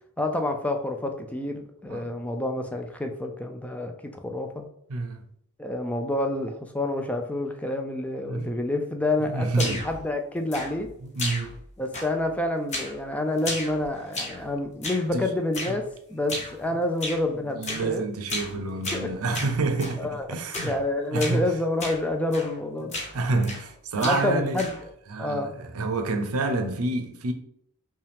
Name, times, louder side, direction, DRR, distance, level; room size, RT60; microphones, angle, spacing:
voice 1, 0.2-4.7 5.6-10.9 11.8-18.0 18.9-19.1 20.0-20.3 20.5-23.0 24.0-24.8 25.2-25.5, left 2 dB, 5° left, 0.4 m, -28 dB
voice 2, 4.9-5.2 8.3-8.5 9.2-9.8 11.0-11.6 15.1-15.3 15.7-15.8 16.3-16.4 16.7-16.8 17.5-20.7 21.1-21.5 23.1-24.6 25.1-27.3, right 3 dB, 80° right, 0.6 m, -28 dB
sound 1, 9.5-10.0 10.5-10.9 11.2-11.7 11.9-12.3 12.7-13.0 13.4-14.4 14.8-15.1 15.5-15.8 16.3-16.6 17.0-17.2 17.6-17.9 18.3-18.6 18.8-20.0 20.5-20.8 21.2-21.4 21.8-22.0 22.3-22.6 22.9-23.7 24.0-24.9, left 2 dB, 35° left, 0.9 m, -34 dB
5.3 x 2.3 x 3.4 m
head